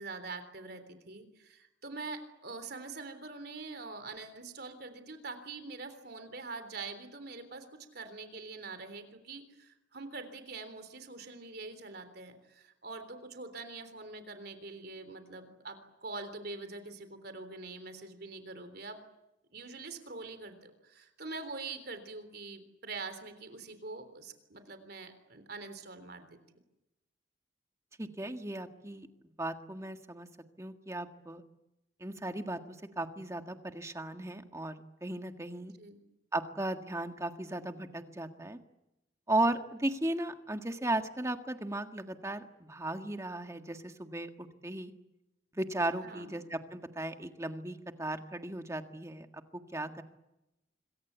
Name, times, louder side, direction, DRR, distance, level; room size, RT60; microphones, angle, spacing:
voice 1, 0.0-19.0 19.5-26.3 35.8-36.0 46.0-46.3, right 3 dB, 55° right, 9 dB, 3.6 m, -44 dB
voice 2, 28.0-29.1 29.4-30.3 30.6-31.4 32.0-35.7 36.3-38.6 39.3-44.9 45.5-50.0, right 1 dB, 15° right, 6 dB, 1.6 m, -36 dB
26.5 x 23.0 x 8.3 m, 0.94 s
head